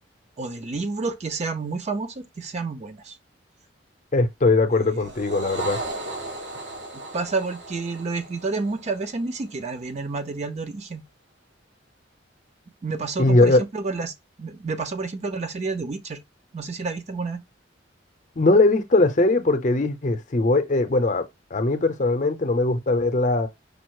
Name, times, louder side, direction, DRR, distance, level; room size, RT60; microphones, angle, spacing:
voice 1, 0.4-3.2 4.9-5.0 7.1-11.0 12.8-14.1 14.4-16.2 16.5-17.4, right 3 dB, 35° right, 0.5 m, -29 dB
voice 2, 4.1-5.8 13.2-13.6 18.4-21.2 21.5-23.5, left 2 dB, 40° left, 0.6 m, -20 dB
sound 1, 4.9-9.5, right 2 dB, 65° right, 1.5 m, -36 dB
5.2 x 2.0 x 4.6 m
head